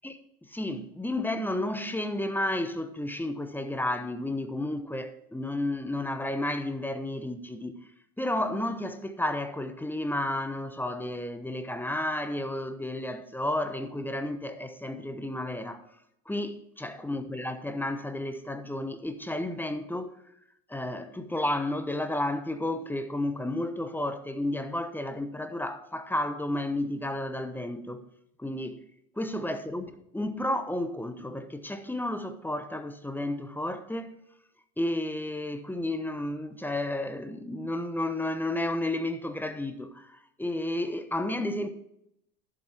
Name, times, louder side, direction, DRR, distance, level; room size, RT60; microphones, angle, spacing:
voice 1, 0.0-7.8 8.2-15.8 16.3-20.1 20.7-28.0 28.4-28.8 29.2-29.8 30.1-34.2 34.8-41.7, left 1 dB, 5° left, 1.0 m, -32 dB
11.5 x 7.5 x 4.4 m
hypercardioid pair, 75°, 49 cm